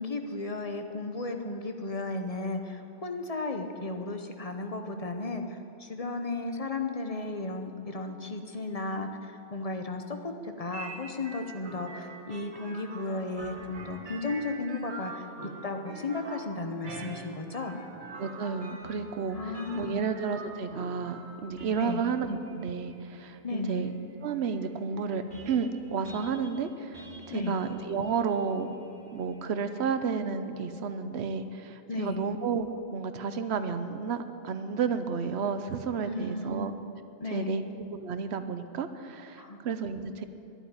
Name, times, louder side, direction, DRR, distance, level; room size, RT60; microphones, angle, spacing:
voice 1, 0.0-17.8 19.3-20.1 21.8-22.1 23.4-23.9 27.3-27.6 31.9-32.3 36.0-36.8 37.2-37.7 39.4-39.6, left 2 dB, 35° left, 5 dB, 0.9 m, -34 dB
sound 1, 10.7-29.4, right 3 dB, 45° right, 1.8 m, -46 dB
voice 2, 18.2-23.9 24.2-28.7 29.1-36.7 37.3-37.6 37.9-40.3, right 5 dB, 70° right, 10 dB, 1.0 m, -32 dB
11.0 x 8.9 x 9.6 m, 2.7 s
omnidirectional pair, 1.2 m